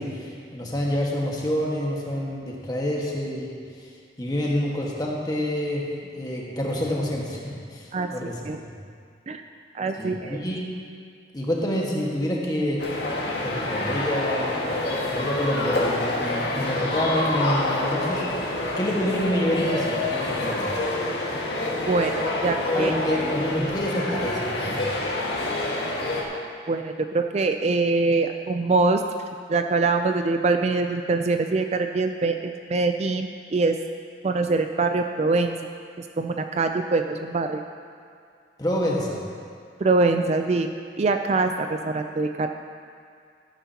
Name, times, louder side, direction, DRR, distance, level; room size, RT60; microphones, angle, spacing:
voice 1, 0.0-3.9 4.2-8.7 10.0-10.6 11.3-12.9 13.4-14.7 15.1-20.7 22.7-24.9 38.6-39.2, equal, 20° left, -3 dB, 1.6 m, -27 dB
voice 2, 9.7-10.4 21.9-22.9 26.7-29.0 29.5-33.8 34.2-35.5 36.2-37.6 39.8-40.7 41.0-42.5, right 3 dB, 40° right, 6 dB, 0.4 m, -23 dB
sound 1, 12.8-26.2, left 2 dB, 70° left, 1.7 m, -27 dB
13.0 x 11.5 x 2.9 m, 2.2 s
head